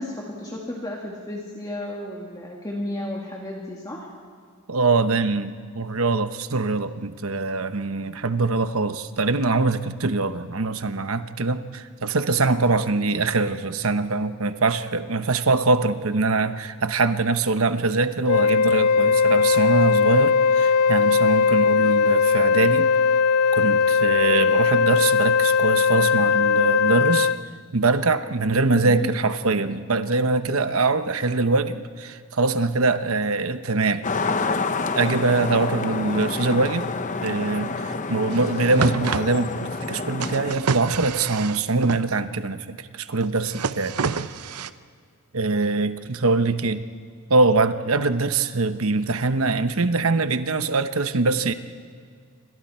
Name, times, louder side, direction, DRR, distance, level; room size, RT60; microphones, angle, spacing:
voice 1, 0.0-4.1 28.8-29.1, left 1 dB, 20° left, -2 dB, 2.2 m, -33 dB
voice 2, 4.7-22.9 23.5-27.3 27.7-34.0 34.9-36.9 37.2-44.0 45.3-46.8 47.3-51.5, right 3 dB, 70° right, 10 dB, 1.0 m, -23 dB
Wind instrument woodwind instrument, 18.3-27.4, left 5 dB, 80° left, 0.4 m, -19 dB
sound 1, 34.0-40.6, left 4 dB, 35° left, 0.9 m, -28 dB
sound 2, 38.3-38.4 38.6-39.2 40.2-42.0 43.2-44.7, right 5 dB, 90° right, 0.7 m, -28 dB
28.0 x 25.0 x 4.4 m, 2.2 s
head